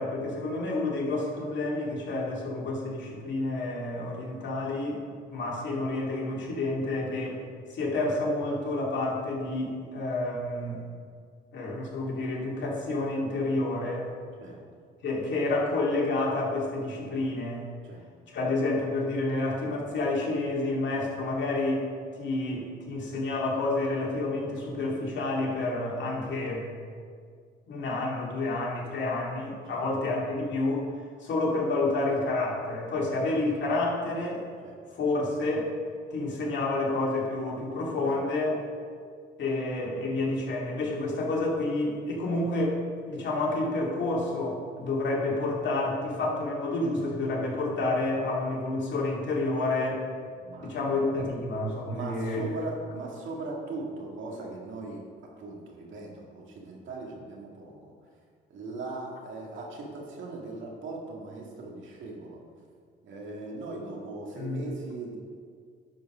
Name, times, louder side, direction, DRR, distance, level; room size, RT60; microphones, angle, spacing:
voice 1, 0.0-5.0 5.3-7.4 7.7-10.8 11.5-14.1 15.0-17.7 18.3-21.9 22.2-26.7 27.7-30.9 31.2-34.4 34.9-35.7 36.1-38.6 39.4-50.0 50.6-52.5 64.4-64.6, left 2 dB, 65° left, -3 dB, 2.3 m, -29 dB
voice 2, 50.3-50.7 51.2-51.3 51.8-55.0 55.4-57.9 58.5-62.4 63.0-65.2, right 2 dB, 75° right, -1 dB, 2.0 m, -39 dB
10.5 x 4.8 x 6.1 m, 2.1 s
cardioid pair, 90°, 20 cm